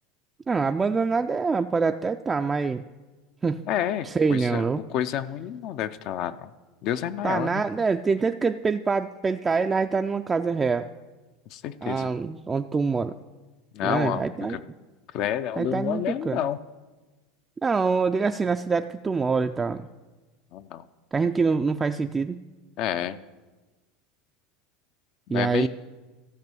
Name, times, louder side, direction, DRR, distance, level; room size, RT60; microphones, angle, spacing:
voice 1, 0.5-2.8 3.4-3.6 4.0-4.8 7.2-10.9 11.8-13.1 13.8-14.6 15.6-16.5 17.6-19.9 21.1-22.4 25.3-25.7, right 4 dB, 20° right, 6 dB, 0.3 m, -25 dB
voice 2, 3.7-6.5 6.8-7.6 11.5-12.1 13.7-14.6 15.1-16.6 20.5-20.8 22.8-23.2 25.3-25.7, left 10 dB, 55° left, 11 dB, 0.5 m, -29 dB
13.5 x 5.4 x 7.7 m, 1.2 s
supercardioid pair, 120°, 0 cm